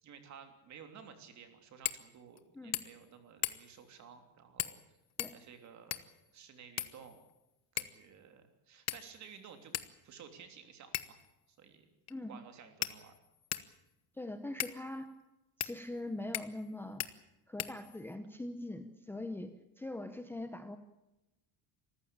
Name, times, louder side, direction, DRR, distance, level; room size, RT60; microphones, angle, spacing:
voice 1, 0.0-5.0 5.3-7.2 7.7-9.8 10.0-11.2 11.5-11.8 12.3-13.1, right 7 dB, 40° right, 7 dB, 3.2 m, -54 dB
sound 1, 1.8-2.1 2.4-2.5 2.7-3.1 3.4-3.8 4.6-4.8 5.2-6.2 6.8-7.3 7.8-8.0 8.9-9.3 9.7-9.9 10.9-11.3 12.1-12.2 12.8-13.7 14.6-14.8 15.6-15.7 16.3-16.7 17.0-17.1 17.6-18.1, left 12 dB, 40° left, 1.0 m, -38 dB
voice 2, 14.1-15.1 15.6-17.0 17.5-20.8, left 1 dB, 5° left, 8 dB, 0.8 m, -42 dB
26.0 x 14.5 x 8.7 m, 0.94 s
cardioid pair, 170°, 42 cm